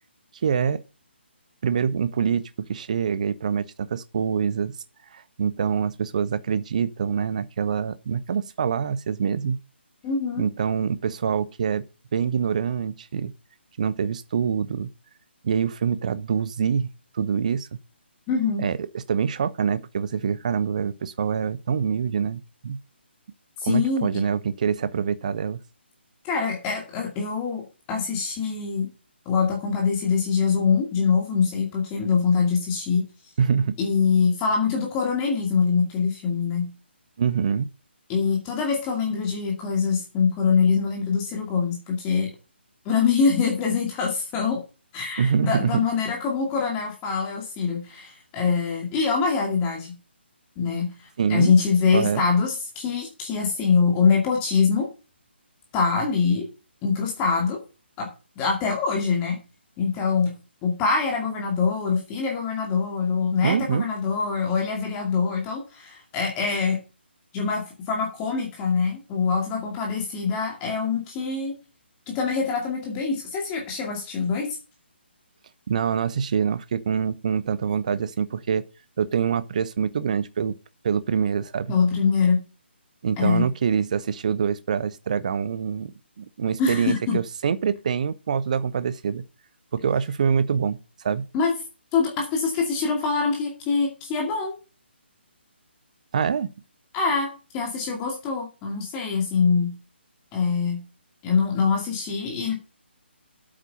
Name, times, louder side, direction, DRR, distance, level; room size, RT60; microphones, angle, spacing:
voice 1, 0.4-0.8 1.6-2.4 2.7-4.7 5.1-9.6 10.4-11.9 12.1-13.3 13.8-14.9 15.4-16.9 17.1-17.7 18.6-22.8 23.6-25.6 33.4-33.8 37.2-37.7 45.2-45.8 51.2-51.5 51.9-52.2 63.4-63.9 75.7-78.6 79.0-80.6 80.8-81.7 83.0-89.2 89.7-91.3 96.1-96.5, right 7 dB, 40° right, 0.6 m, -25 dB
voice 2, 10.0-10.4 18.3-18.6 23.6-24.1 26.2-28.9 29.3-33.0 33.8-36.7 38.1-42.3 42.8-44.6 44.9-49.9 50.6-50.9 51.3-54.9 55.7-56.5 56.8-57.6 58.0-58.1 58.4-59.4 59.8-60.3 60.6-66.8 67.3-71.6 72.1-74.6 81.7-82.4 83.2-83.5 86.6-87.2 91.3-91.5 91.9-94.5 96.9-99.7 100.3-100.8 101.2-102.5, left 5 dB, 20° left, 2.3 m, -24 dB
8.7 x 8.2 x 5.5 m
figure-of-eight pair, 145°, 6 cm